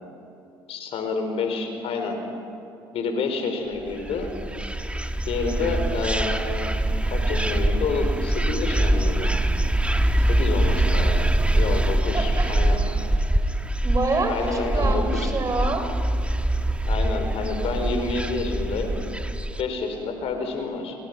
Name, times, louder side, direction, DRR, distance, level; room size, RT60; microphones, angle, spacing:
voice 1, 0.7-2.2 2.9-4.3 5.2-6.7 7.1-9.3 10.3-11.3 11.5-12.8 14.3-15.2 16.8-19.0 19.6-21.0, left 4 dB, 60° left, 5 dB, 4.7 m, -28 dB
sound 1, 3.9-19.6, right 1 dB, 10° right, 1.6 m, -24 dB
voice 2, 12.1-12.6 13.8-15.9, right 2 dB, 30° right, 5 dB, 5.6 m, -27 dB
30.0 x 28.0 x 6.1 m, 2.6 s
hypercardioid pair, 55°, 12 cm